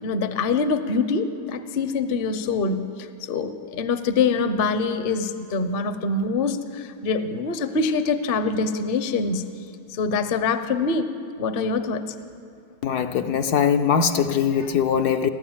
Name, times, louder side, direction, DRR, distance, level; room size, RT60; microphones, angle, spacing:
voice 1, 0.0-9.5 9.9-11.1 11.4-12.1, left 4 dB, 45° left, 10 dB, 0.8 m, -24 dB
voice 2, 12.8-15.3, left 7 dB, 65° left, 7 dB, 1.2 m, -21 dB
30.0 x 12.0 x 8.8 m, 2.7 s
omnidirectional pair, 2.0 m